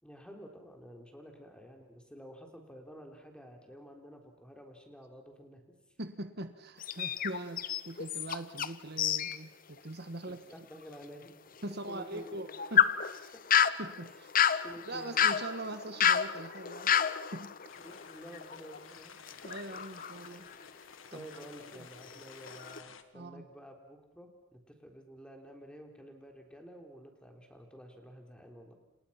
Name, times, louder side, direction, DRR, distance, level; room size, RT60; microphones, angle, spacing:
voice 1, 0.0-5.8 9.8-9.9 10.3-12.4 13.3-13.4 14.6-15.3 17.8-19.1 19.8-19.9 21.1-28.8, equal, 5° left, 3 dB, 3.8 m, -51 dB
voice 2, 6.0-10.4 11.6-13.3 13.8-14.3 14.9-16.9 17.3-17.6 19.4-20.5 21.1-21.3 21.7-21.9 23.1-23.4, right 1 dB, 55° right, 9 dB, 1.5 m, -42 dB
sound 1, 6.8-8.7 9.0-9.4 9.8-9.9 10.5-10.6 12.1-18.8 19.3-20.8 21.3-21.6 22.0-22.8, left 8 dB, 45° left, 0.9 m, -30 dB
sound 2, 17.7-23.0, left 6 dB, 90° left, 1.7 m, -54 dB
29.5 x 28.5 x 5.9 m, 0.91 s
head